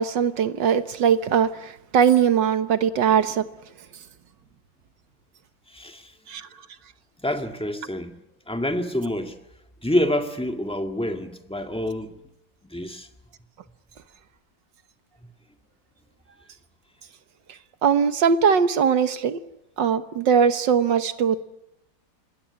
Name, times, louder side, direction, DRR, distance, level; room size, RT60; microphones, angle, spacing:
voice 1, 0.0-3.4 6.3-6.5 17.8-19.4 19.8-21.4, right 7 dB, 75° right, 1.9 m, -20 dB
voice 2, 5.7-6.1 7.2-8.1 8.5-9.4 9.8-12.1 12.7-13.1, left 1 dB, 5° left, 1.7 m, -27 dB
26.5 x 20.5 x 9.7 m
omnidirectional pair, 2.0 m